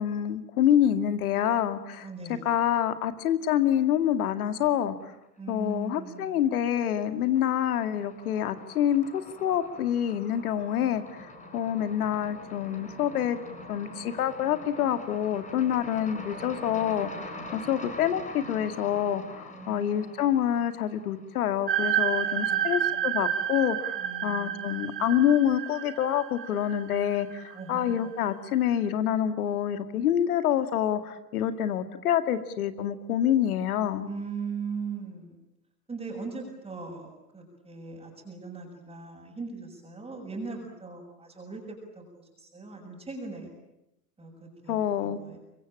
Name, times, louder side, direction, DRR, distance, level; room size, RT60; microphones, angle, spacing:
voice 1, 0.0-2.1 2.4-5.1 5.5-11.0 11.5-13.4 13.7-34.1 44.7-45.2, left 10 dB, 60° left, 10 dB, 2.4 m, -27 dB
voice 2, 2.0-2.5 5.4-6.3 19.5-20.3 22.4-23.0 24.0-24.9 27.5-28.1 34.0-35.4 35.9-43.5 44.2-45.4, right 4 dB, 10° right, -3 dB, 6.8 m, -40 dB
sound 1, 5.5-6.2 6.5-21.7, left 1 dB, 15° left, 5.9 m, -44 dB
sound 2, 21.7-27.9, right 10 dB, 85° right, 3.4 m, -30 dB
25.5 x 23.5 x 8.8 m, 0.86 s
figure-of-eight pair, 100°, 49 cm